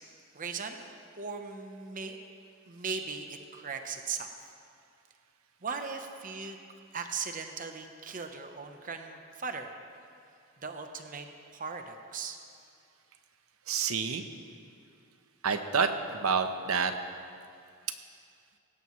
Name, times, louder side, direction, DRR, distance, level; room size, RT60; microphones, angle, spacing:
voice 1, 0.3-0.9 1.2-2.2 2.7-3.3 3.5-4.3 5.6-6.6 6.9-9.7 10.6-11.3 11.5-12.4, right 5 dB, 40° right, 5 dB, 0.9 m, -38 dB
voice 2, 13.7-14.2 15.4-16.9, right 5 dB, 85° right, 8 dB, 0.9 m, -28 dB
18.0 x 17.0 x 3.2 m, 2.4 s
head